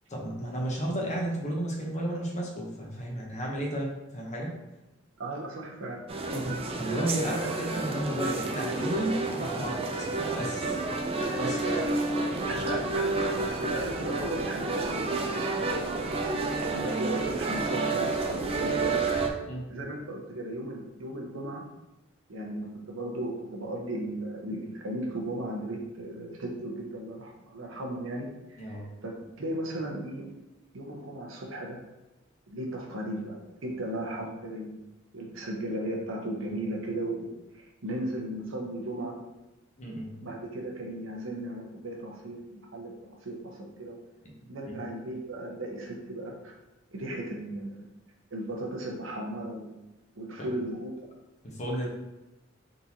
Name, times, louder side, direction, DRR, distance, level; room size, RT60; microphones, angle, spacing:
voice 1, 0.1-4.5 6.3-9.9 10.3-10.8 11.4-11.6 12.5-12.8 19.5-19.6 28.6-28.8 39.8-40.2 44.7-44.9 50.4-50.5 51.4-51.9, right 1 dB, 35° left, -1 dB, 0.9 m, -33 dB
voice 2, 5.2-6.0 11.4-11.8 12.5-13.3 13.6-15.5 15.9-19.3 19.7-21.6 22.3-29.1 29.4-30.3 30.7-31.8 32.5-34.8 35.1-39.2 40.2-44.0 44.5-46.5 46.9-47.8 48.3-49.7 50.1-50.9, right 1 dB, 70° right, 0 dB, 0.9 m, -36 dB
sound 1, 6.1-19.3, right 3 dB, 30° right, 0.4 m, -30 dB
4.2 x 3.8 x 2.8 m, 0.99 s
head